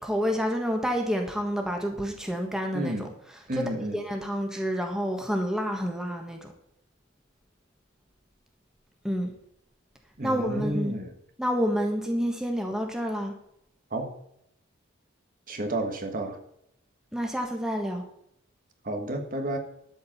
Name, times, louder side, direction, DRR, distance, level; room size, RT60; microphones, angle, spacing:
voice 1, 0.0-3.1 3.5-6.5 9.0-9.3 10.2-11.0 11.4-13.3 17.1-18.0, equal, 5° right, 2 dB, 1.5 m, -29 dB
voice 2, 2.7-3.1 3.5-4.0 10.2-11.1 13.9-14.1 15.5-16.4 18.8-19.6, right 1 dB, 45° right, 5 dB, 1.5 m, -31 dB
12.5 x 5.0 x 7.3 m, 0.74 s
head